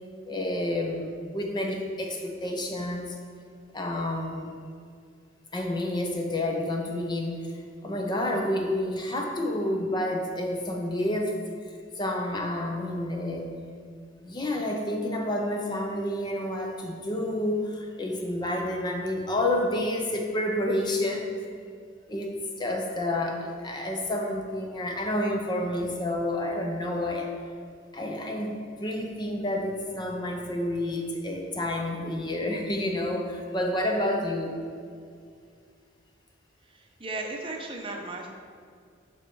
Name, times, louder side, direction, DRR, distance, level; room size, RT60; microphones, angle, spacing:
voice 1, 0.3-3.2 3.7-4.6 5.5-11.4 12.0-13.5 14.2-21.3 22.1-27.3 27.9-34.6, left 1 dB, 20° left, 2 dB, 0.6 m, -29 dB
voice 2, 36.7-38.3, right 2 dB, 25° right, 1 dB, 0.7 m, -36 dB
6.3 x 5.9 x 4.7 m, 2.2 s
head